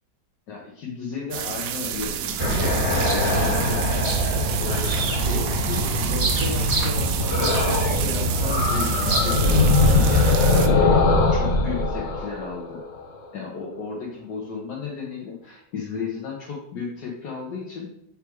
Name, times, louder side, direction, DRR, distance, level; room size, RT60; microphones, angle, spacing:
voice 1, 0.5-4.2 4.6-4.9 5.2-10.3 10.6-11.0 11.3-12.8 13.3-17.9, left 5 dB, 70° left, -3 dB, 1.5 m, -34 dB
sound 1, 1.3-10.7, right 10 dB, 75° right, 0.8 m, -30 dB
sound 2, 2.0-6.2 7.3-8.0 8.3-13.2, left 3 dB, 45° left, 1.1 m, -22 dB
sound 3, 2.4-10.2, right 2 dB, 30° right, 1.1 m, -25 dB
6.5 x 3.5 x 4.6 m, 0.75 s
omnidirectional pair, 1.9 m